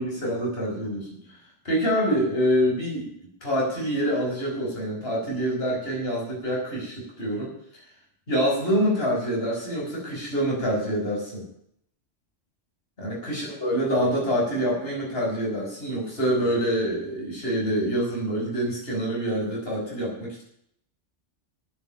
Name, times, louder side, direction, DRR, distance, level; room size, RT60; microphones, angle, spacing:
voice 1, 0.0-1.4 1.6-3.1 3.4-7.6 8.3-11.5 13.0-20.4, equal, 50° left, -3 dB, 6.2 m, -26 dB
11.5 x 10.0 x 9.1 m, 0.71 s
omnidirectional pair, 1.3 m